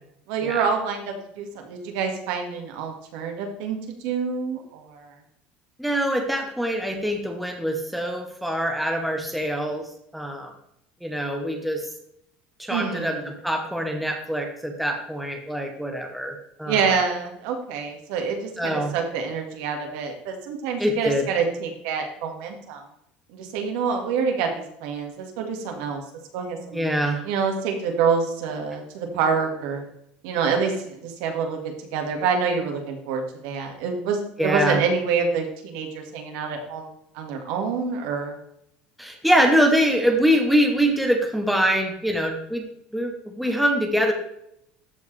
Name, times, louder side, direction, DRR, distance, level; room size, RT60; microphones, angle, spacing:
voice 1, 0.3-5.2 12.7-13.3 16.7-22.8 23.3-26.0 26.3-26.8 27.2-29.8 30.2-36.9 37.1-38.4, right 5 dB, 75° right, 3 dB, 1.9 m, -27 dB
voice 2, 5.8-9.9 10.1-10.5 11.0-11.9 12.6-16.9 18.6-18.9 20.8-21.3 26.7-27.2 34.4-34.8 39.0-42.7 42.9-44.1, equal, ahead, 2 dB, 1.0 m, -24 dB
13.5 x 4.7 x 3.3 m, 0.74 s
cardioid pair, 155°, 4 cm